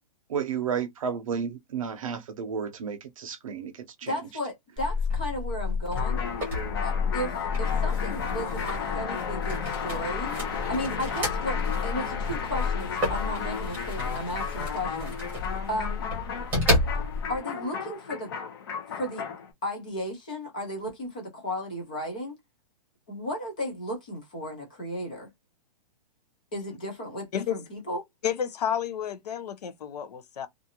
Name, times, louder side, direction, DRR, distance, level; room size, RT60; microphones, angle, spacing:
voice 1, 0.3-4.2, right 7 dB, 55° right, 0.6 m, -32 dB
voice 2, 4.0-6.2 6.8-10.3 10.7-15.1 15.7-16.0 17.3-18.3 19.0-19.3 19.6-22.4 23.1-25.3 26.5-28.0, equal, 10° left, 0.3 m, -34 dB
sound 1, 4.8-17.4, left 3 dB, 10° right, 0.9 m, -30 dB
sound 2, 6.0-19.5, left 6 dB, 35° left, 0.7 m, -34 dB
voice 3, 28.2-30.5, left 9 dB, 70° left, 0.6 m, -31 dB
2.5 x 2.4 x 2.8 m
hypercardioid pair, 175°, 21 cm